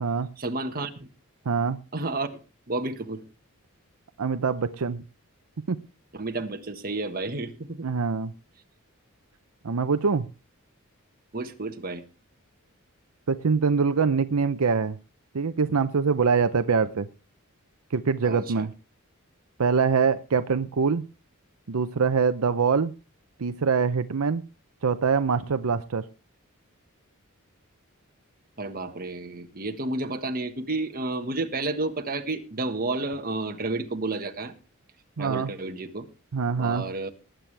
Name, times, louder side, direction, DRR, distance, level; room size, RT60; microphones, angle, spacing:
voice 1, 0.4-0.9 1.9-2.3 2.7-3.2 6.1-7.9 11.3-12.0 18.2-18.7 28.6-34.5 35.2-36.1 36.6-37.1, right 2 dB, 45° right, 6 dB, 1.5 m, -31 dB
voice 2, 1.5-1.8 4.2-5.0 5.7-5.8 7.8-8.3 9.6-10.3 13.3-15.0 15.3-17.1 17.9-18.7 19.6-21.0 21.7-22.9 23.4-24.4 24.8-26.0 35.2-35.5 36.3-36.8, right 5 dB, 75° right, 11 dB, 0.6 m, -24 dB
19.5 x 9.0 x 3.4 m, 0.33 s
head